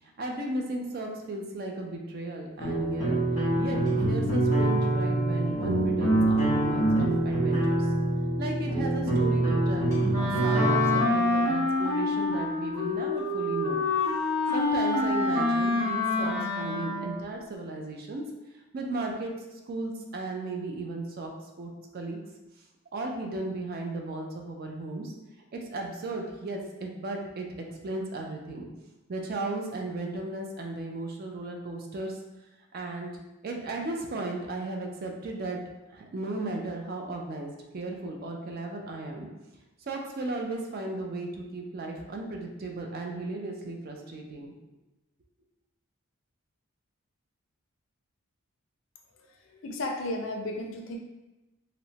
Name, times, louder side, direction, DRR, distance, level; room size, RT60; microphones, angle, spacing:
voice 1, 0.0-3.2 3.6-7.9 8.4-13.8 14.5-18.2 18.7-21.3 21.6-22.2 22.9-25.1 25.5-27.5 27.8-28.7 29.1-32.2 32.7-33.1 33.4-35.6 35.9-39.3 39.8-44.5, right 2 dB, 45° right, 1 dB, 0.3 m, -35 dB
sound 1, 2.6-11.0, right 1 dB, 15° right, 1.0 m, -25 dB
Wind instrument woodwind instrument, 10.1-17.3, left 3 dB, 30° right, 1.5 m, -27 dB
voice 2, 49.1-51.0, left 1 dB, 60° left, 2 dB, 0.4 m, -34 dB
2.8 x 2.1 x 2.7 m, 1.0 s
head